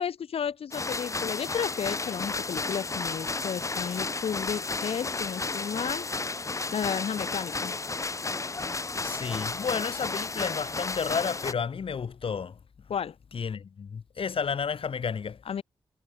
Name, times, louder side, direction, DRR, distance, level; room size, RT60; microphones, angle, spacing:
voice 1, 0.0-6.1 6.7-7.7 12.9-13.2 15.4-15.6, left 7 dB, 90° left, 2.7 m, -33 dB
sound 1, 0.7-11.5, left 3 dB, 35° left, 1.3 m, -33 dB
voice 2, 9.0-12.6 13.3-15.4, left 6 dB, 70° left, 3.8 m, -31 dB
wide cardioid pair, 90°, 10 cm